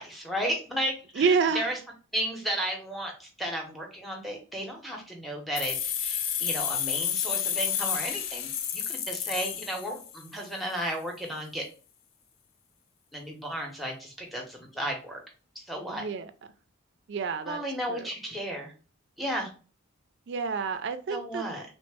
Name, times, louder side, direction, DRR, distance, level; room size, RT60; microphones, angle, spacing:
voice 1, 0.0-1.8 2.1-11.6 13.1-15.2 15.7-16.0 17.5-18.7 19.2-19.5 21.1-21.6, equal, ahead, 1 dB, 0.6 m, -34 dB
voice 2, 1.2-1.7 15.9-16.3 17.1-17.6 17.9-18.1 20.3-21.5, right 5 dB, 55° right, 9 dB, 0.3 m, -28 dB
sound 1, 5.6-10.3, left 9 dB, 80° left, 0.4 m, -30 dB
3.1 x 2.0 x 3.3 m, 0.36 s
head